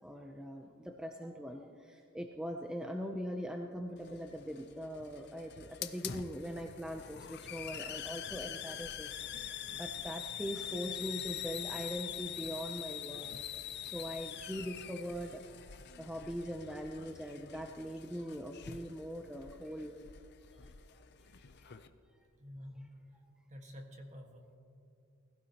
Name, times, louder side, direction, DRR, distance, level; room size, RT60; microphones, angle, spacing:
voice 1, 0.0-13.4 13.8-15.4 16.0-20.0, equal, 5° right, 3 dB, 0.5 m, -41 dB
Hiss, 4.0-21.9, left 9 dB, 50° left, 0.5 m, -45 dB
voice 2, 22.4-23.1 23.5-24.6, left 1 dB, 35° right, 2 dB, 1.5 m, -49 dB
20.5 x 16.0 x 2.9 m, 2.5 s
head